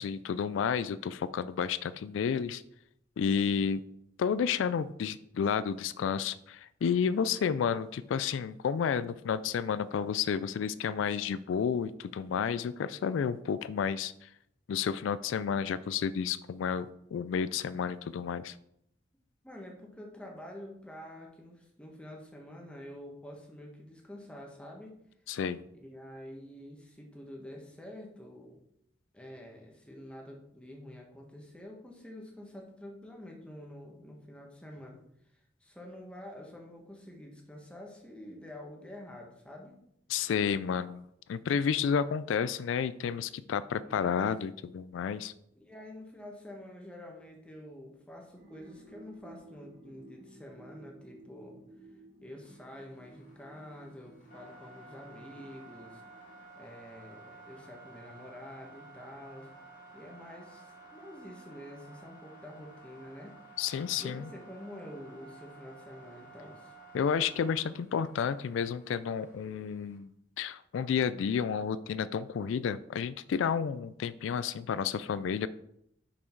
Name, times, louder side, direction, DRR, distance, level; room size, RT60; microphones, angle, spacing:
voice 1, 0.0-2.6 3.2-3.8 4.2-14.3 14.7-18.6 25.3-25.6 40.1-41.0 41.3-45.3 63.6-64.3 66.9-70.1 70.4-75.5, left 7 dB, 85° left, 16 dB, 0.3 m, -31 dB
voice 2, 19.4-24.9 25.7-28.6 29.1-35.0 35.3-39.7 43.7-44.2 45.5-51.9 52.2-56.0 56.6-59.5 59.9-63.4 64.0-66.7, left 1 dB, 5° left, 0 dB, 1.3 m, -48 dB
sound 1, 48.4-56.4, right 2 dB, 50° right, 3.1 m, -55 dB
sound 2, 52.4-70.0, right 2 dB, 40° left, 2.0 m, -54 dB
6.3 x 5.9 x 4.5 m, 0.76 s
head